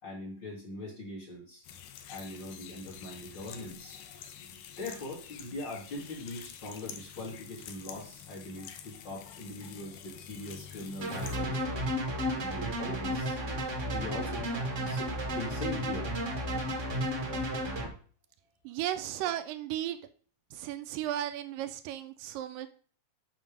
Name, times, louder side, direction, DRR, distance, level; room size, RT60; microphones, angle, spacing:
voice 1, 0.0-1.6 2.1-4.0 4.8-11.9 12.3-13.4 13.9-14.5 14.8-16.1, left 2 dB, 35° left, -2 dB, 2.4 m, -41 dB
sound 1, 1.6-11.4, left 8 dB, 75° left, 2.4 m, -47 dB
sound 2, 11.0-17.9, equal, 40° right, 1.1 m, -33 dB
voice 2, 18.6-20.0 20.5-22.7, right 12 dB, 80° right, 9 dB, 2.2 m, -35 dB
7.1 x 6.0 x 5.2 m, 0.43 s
omnidirectional pair, 4.0 m